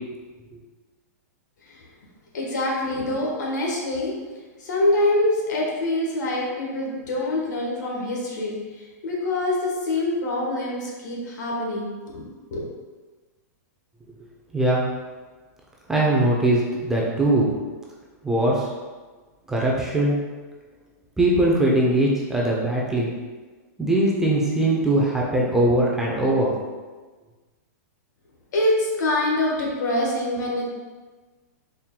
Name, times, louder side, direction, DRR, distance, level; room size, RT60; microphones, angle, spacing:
voice 1, 2.3-4.1 4.6-12.2 12.5-12.6 28.5-30.7, left 1 dB, 80° left, -2 dB, 1.1 m, -25 dB
voice 2, 14.5-14.9 15.9-17.5 18.2-18.7 19.5-20.2 21.2-23.1 23.8-26.6, right 1 dB, 5° right, -4 dB, 0.4 m, -21 dB
4.3 x 2.1 x 3.6 m, 1.3 s
supercardioid pair, 160°, 9 cm